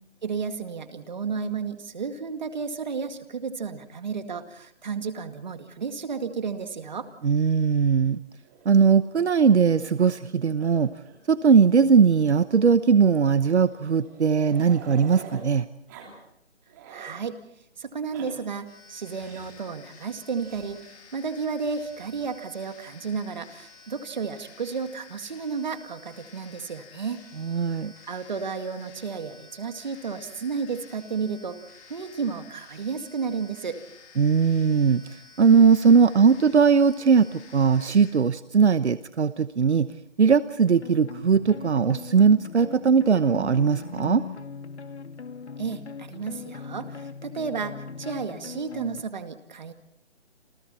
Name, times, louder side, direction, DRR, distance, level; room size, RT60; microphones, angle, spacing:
voice 1, 0.2-7.1 16.9-17.4 17.8-20.8 21.1-27.2 28.1-31.6 31.9-33.8 45.6-49.7, right 5 dB, 40° right, 8 dB, 2.2 m, -32 dB
voice 2, 7.2-8.2 8.6-10.9 11.3-15.6 27.4-27.9 34.2-37.3 37.5-39.9 40.2-44.2, right 6 dB, 70° right, 13 dB, 1.1 m, -19 dB
Growling, 8.4-10.3 10.6-10.8 11.0-11.2 11.5-11.6 12.6-15.5 15.9-16.1 16.5-17.2 17.9-18.3 19.2-19.6 20.4-20.7 21.8-22.5, right 6 dB, 15° right, 3.0 m, -47 dB
sound 1, 18.7-38.1, left 5 dB, 15° left, 4.3 m, -51 dB
sound 2, 40.6-49.0, left 5 dB, 70° left, 1.9 m, -40 dB
29.0 x 28.0 x 4.4 m, 0.70 s
hypercardioid pair, 170°, 35 cm